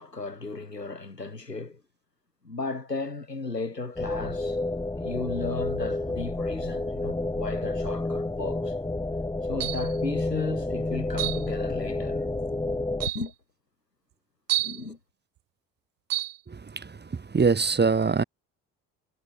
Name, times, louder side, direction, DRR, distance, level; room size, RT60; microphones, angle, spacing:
voice 1, 0.0-1.8 2.4-4.6 5.0-8.7 9.4-12.2 13.1-13.3 14.6-15.0, left 3 dB, 90° left, 3.5 m, -35 dB
sound 1, 4.0-13.1, left 2 dB, 10° left, 1.4 m, -30 dB
sound 2, 9.6-10.0 11.2-11.5 12.4-12.5 13.0-13.3 14.5-14.8 16.1-16.4, right 14 dB, 45° right, 1.1 m, -29 dB
voice 2, 16.5-18.2, right 5 dB, 20° right, 1.6 m, -24 dB
figure-of-eight pair, 45°, 47 cm